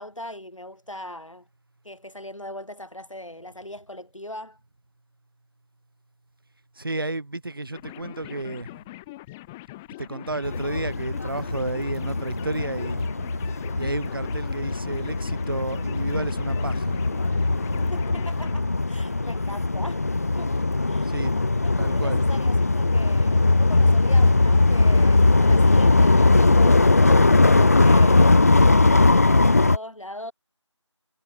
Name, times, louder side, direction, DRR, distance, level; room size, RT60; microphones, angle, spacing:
voice 1, 0.0-1.5 1.8-4.6 17.9-20.1 20.3-20.6 20.9-21.2 21.6-28.4 28.7-30.3, left 1 dB, 90° left, 7.8 m, -40 dB
voice 2, 6.8-8.7 10.0-13.1 13.8-17.0 21.0-21.3 21.8-22.4, right 2 dB, 45° right, 4.9 m, -31 dB
sound 1, 7.7-18.6, left 20 dB, 5° left, 1.6 m, -42 dB
sound 2, 10.4-29.8, left 3 dB, 30° left, 2.0 m, -20 dB
figure-of-eight pair, 170°, 16 cm